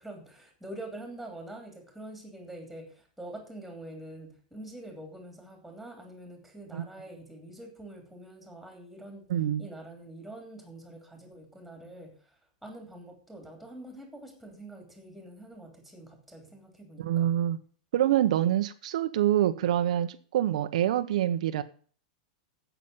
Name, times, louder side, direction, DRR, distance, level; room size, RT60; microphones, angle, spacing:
voice 1, 0.0-9.2 9.6-17.3, right 1 dB, ahead, 3 dB, 3.1 m, -45 dB
voice 2, 9.3-9.6 17.0-17.6 17.9-21.6, right 11 dB, 70° right, 8 dB, 1.0 m, -26 dB
8.8 x 8.1 x 7.9 m, 0.44 s
supercardioid pair, 165°, 4 cm